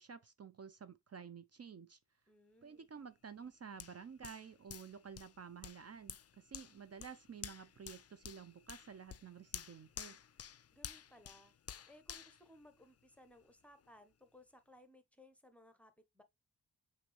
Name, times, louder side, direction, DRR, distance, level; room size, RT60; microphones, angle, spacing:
voice 1, 0.0-2.0 2.6-10.2, right 6 dB, 35° right, 0.5 m, -52 dB
voice 2, 2.3-2.9 10.7-11.5 11.9-16.2, left 1 dB, 5° left, 0.9 m, -62 dB
Hands, 3.8-13.3 13.8-13.9, left 9 dB, 40° left, 0.4 m, -52 dB
5.9 x 2.7 x 3.1 m
cardioid pair, 45°, 42 cm